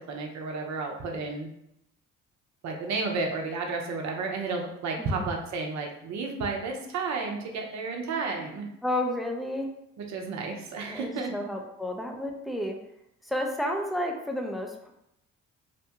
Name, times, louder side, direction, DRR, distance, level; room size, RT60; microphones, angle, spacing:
voice 1, 0.1-1.5 2.6-8.7 10.0-11.4, right 4 dB, 60° right, 2 dB, 0.7 m, -32 dB
voice 2, 5.0-5.3 8.8-9.7 10.8-12.8 13.2-14.9, left 1 dB, ahead, 1 dB, 0.5 m, -31 dB
2.6 x 2.2 x 2.8 m, 0.79 s
hypercardioid pair, 55°, 31 cm